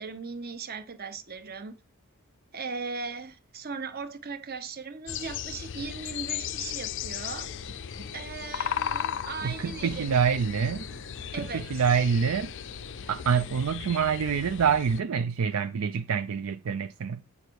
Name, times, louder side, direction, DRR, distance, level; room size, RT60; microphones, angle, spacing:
voice 1, 0.0-1.7 2.5-7.5 8.1-10.3 11.3-11.8, right 4 dB, 45° right, 1.1 m, -38 dB
sound 1, 5.1-15.0, left 9 dB, 60° left, 0.5 m, -36 dB
sound 2, 7.4-13.6, right 1 dB, 90° right, 1.3 m, -50 dB
voice 2, 9.4-10.9 11.4-12.5 13.1-17.2, right 6 dB, 70° right, 0.4 m, -26 dB
8.4 x 5.3 x 4.6 m
head